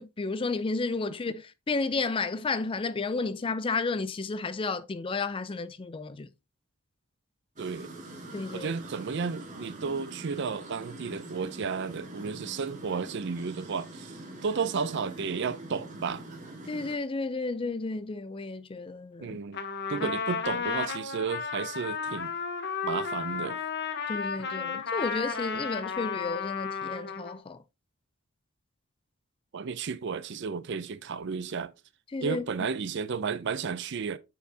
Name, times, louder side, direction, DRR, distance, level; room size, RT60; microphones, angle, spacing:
voice 1, 0.0-6.3 8.3-8.7 16.7-19.4 20.0-20.1 24.1-27.6 32.1-32.4, left 3 dB, 25° left, 0.4 m, -32 dB
sound 1, 7.6-16.9, right 1 dB, 35° right, 1.7 m, -44 dB
voice 2, 7.6-7.9 8.5-14.1 14.4-16.2 19.2-19.6 19.9-22.3 22.8-23.6 29.5-31.7 32.2-34.2, right 5 dB, 55° right, 0.5 m, -33 dB
Trumpet, 19.5-27.4, left 5 dB, 55° left, 1.0 m, -33 dB
8.0 x 4.6 x 2.7 m
head